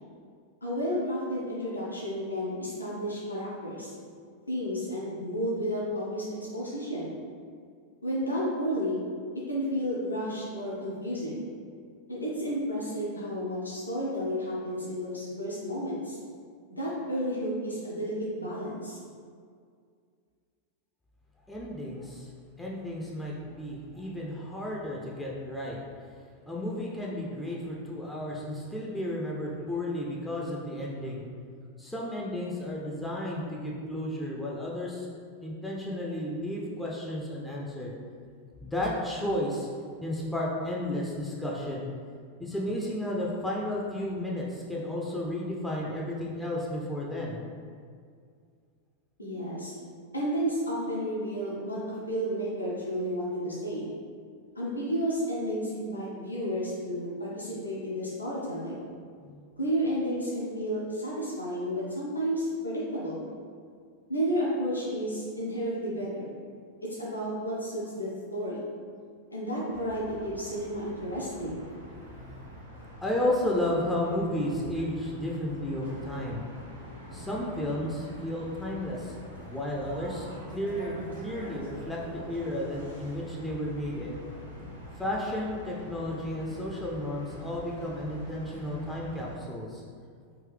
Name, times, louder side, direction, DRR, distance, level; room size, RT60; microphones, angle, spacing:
voice 1, 0.6-3.9 4.5-7.1 8.0-9.0 9.3-11.4 12.1-16.2 16.7-19.0 49.2-49.7 50.1-53.9 54.6-58.9 59.6-63.3 64.1-66.3 66.8-68.7 69.3-71.6, equal, 80° left, -6 dB, 0.8 m, -32 dB
voice 2, 21.5-22.3 22.6-25.8 26.5-31.3 31.8-35.1 35.4-37.9 38.6-39.7 40.0-41.9 42.4-47.4 59.2-59.4 71.8-72.4 73.0-76.5 77.1-79.1 79.5-84.2 85.0-89.8, left 1 dB, 5° left, -4 dB, 0.5 m, -33 dB
sound 1, 69.7-89.3, equal, 85° right, 1.2 m, -44 dB
3.8 x 2.6 x 3.3 m, 2.1 s
figure-of-eight pair, 90°, 0 cm